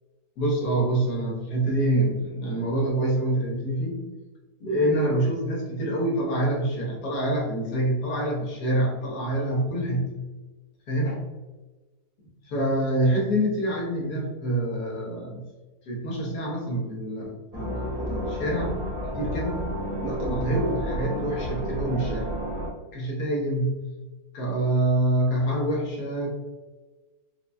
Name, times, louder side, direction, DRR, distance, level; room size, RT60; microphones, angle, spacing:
voice 1, 0.4-4.1 4.6-10.1 10.9-11.2 12.4-15.4 15.9-18.8 19.1-19.7 20.0-22.3 22.9-23.8 24.3-26.3, right 1 dB, 85° left, -2 dB, 1.5 m, -26 dB
sound 1, 17.5-22.7, equal, 65° right, 1.7 m, -31 dB
4.5 x 2.2 x 2.6 m, 1.2 s
omnidirectional pair, 1.7 m